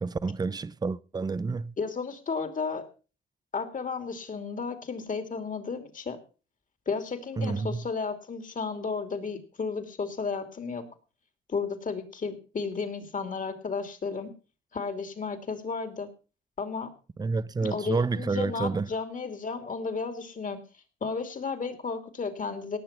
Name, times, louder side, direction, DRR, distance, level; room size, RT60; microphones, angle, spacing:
voice 1, 0.0-1.7 7.4-7.8 17.2-18.9, right 4 dB, 20° right, 0.6 m, -29 dB
voice 2, 1.8-2.8 3.5-6.2 6.9-10.9 11.5-14.3 14.7-16.1 16.6-16.9 17.6-20.6 21.0-22.8, left 5 dB, 40° left, 2.7 m, -33 dB
18.0 x 6.8 x 5.8 m
cardioid pair, 90°, 20 cm